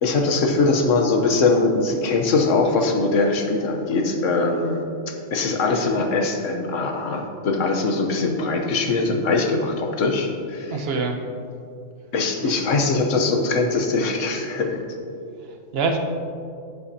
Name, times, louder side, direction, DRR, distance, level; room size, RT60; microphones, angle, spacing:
voice 1, 0.0-4.8 5.1-10.8 12.1-14.8, left 3 dB, 80° left, 3 dB, 1.3 m, -22 dB
voice 2, 10.7-11.2 12.4-12.6 15.5-16.0, right 4 dB, 55° right, 4 dB, 1.1 m, -25 dB
10.5 x 9.6 x 2.8 m, 2.5 s
omnidirectional pair, 1.3 m